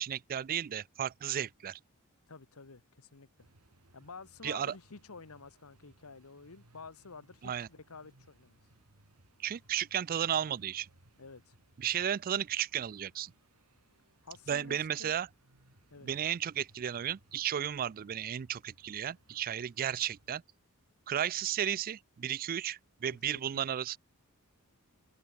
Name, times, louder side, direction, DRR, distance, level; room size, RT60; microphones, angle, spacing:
voice 1, 0.0-1.8 4.4-4.7 7.4-7.7 9.4-10.9 11.8-13.3 14.5-15.3 16.0-20.4 21.1-24.0, right 9 dB, 40° right, 0.3 m, -34 dB
voice 2, 2.3-3.5 3.9-8.6 11.2-11.5 14.2-15.1 15.9-16.1 23.1-23.4, left 4 dB, 70° left, 1.3 m, -51 dB
sound 1, 3.4-20.4, right 1 dB, 85° right, 2.9 m, -66 dB
open air
head